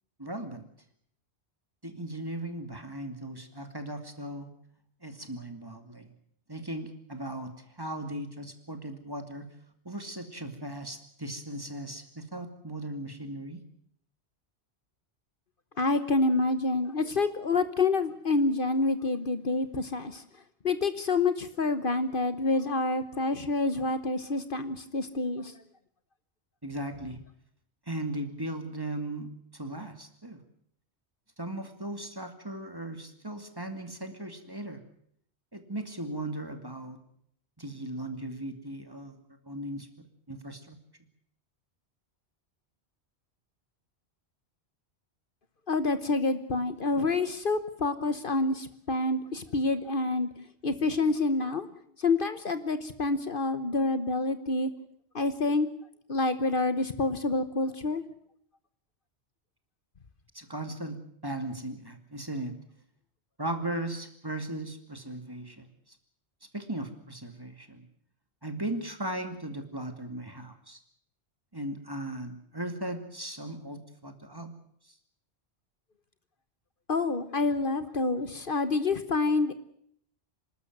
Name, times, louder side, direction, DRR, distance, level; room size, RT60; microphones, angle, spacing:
voice 1, 0.2-0.7 1.8-4.5 5.0-6.1 6.5-9.5 9.8-13.6 26.6-27.2 27.9-30.4 31.4-34.8 35.5-37.0 37.6-39.2 39.5-39.9 40.3-40.8 60.3-62.5 63.4-66.0 66.5-67.8 68.4-70.8 71.5-74.5 74.8-74.9, right 1 dB, 20° right, 7 dB, 2.4 m, -37 dB
voice 2, 15.8-20.2 20.6-25.5 45.7-50.3 50.6-51.7 52.0-54.7 55.1-55.7 56.1-58.0 76.9-79.5, left 3 dB, 55° left, 11 dB, 1.3 m, -27 dB
26.5 x 12.5 x 9.4 m, 0.67 s
omnidirectional pair, 1.1 m